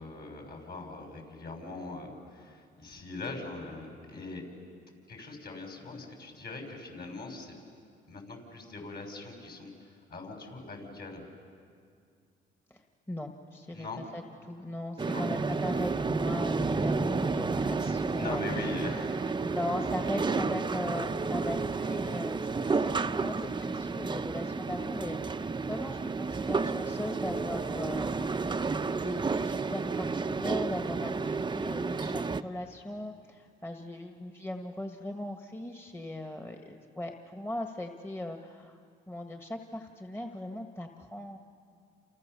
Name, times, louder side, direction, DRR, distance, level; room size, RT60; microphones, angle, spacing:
voice 1, 0.0-4.4 5.1-7.5 8.1-11.2 13.7-14.0 15.0-15.3 18.1-19.5 28.0-28.3, left 2 dB, 50° left, 2 dB, 7.1 m, -41 dB
voice 2, 12.7-18.8 19.4-28.1 28.8-38.8 39.1-41.4, left 1 dB, 10° left, 4 dB, 1.7 m, -39 dB
sound 1, 15.0-32.4, right 4 dB, 25° right, 0.8 m, -31 dB
29.5 x 29.0 x 7.0 m, 2.3 s
cardioid pair, 90°, 20 cm